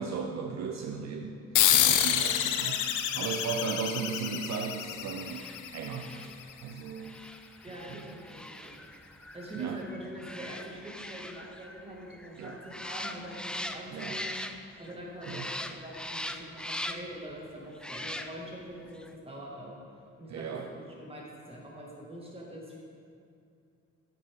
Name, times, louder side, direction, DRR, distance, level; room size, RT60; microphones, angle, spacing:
voice 1, 0.0-1.4 1.7-6.3 6.6-7.2 7.9-8.2 9.6-9.8 12.4-12.6 13.9-14.2 15.3-15.5 20.3-20.7, right 6 dB, 60° right, 3 dB, 0.6 m, -36 dB
sound 1, 1.5-6.5, left 10 dB, 80° left, 0.6 m, -28 dB
sound 2, 5.1-14.9 15.2-17.2 17.7-18.6 18.9-19.1, left 1 dB, 5° left, 0.3 m, -41 dB
voice 2, 7.6-8.8 9.3-14.3 14.8-19.8 20.2-22.8, right 1 dB, 20° right, -3 dB, 2.2 m, -44 dB
9.0 x 8.3 x 3.8 m, 2.4 s
cardioid pair, 90°, 30 cm